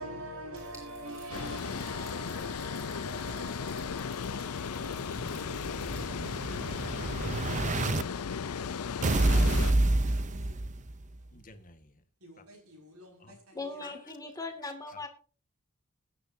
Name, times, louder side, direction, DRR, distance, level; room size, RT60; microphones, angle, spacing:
voice 1, 0.0-6.4 10.0-11.2 12.2-13.9, right 1 dB, 75° right, 6.1 m, -46 dB
sound 1, 0.5-6.1, right 1 dB, 15° right, 7.3 m, -55 dB
Water, 1.3-9.7, left 6 dB, 85° left, 0.6 m, -36 dB
Explosion, 4.7-8.0 9.0-11.0, right 2 dB, 35° right, 0.7 m, -28 dB
voice 2, 11.3-11.9 12.4-12.5 13.2-13.4 13.8-13.9, left 2 dB, 40° left, 1.6 m, -53 dB
voice 3, 13.5-15.1, left 3 dB, 15° left, 2.4 m, -39 dB
20.0 x 9.8 x 2.8 m
head